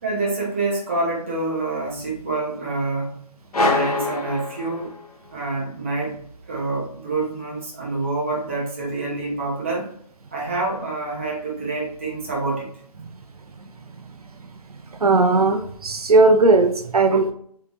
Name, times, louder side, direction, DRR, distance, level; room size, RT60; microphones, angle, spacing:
voice 1, 0.0-3.2 3.6-5.0 5.3-6.2 6.5-9.9 10.3-12.7, right 3 dB, 20° right, -3 dB, 0.5 m, -27 dB
sound 1, 3.5-5.3, left 2 dB, 65° left, 0.7 m, -24 dB
voice 2, 15.0-17.3, right 3 dB, 65° right, 6 dB, 0.5 m, -17 dB
3.7 x 2.8 x 2.3 m, 0.62 s
figure-of-eight pair, 155°, 20 cm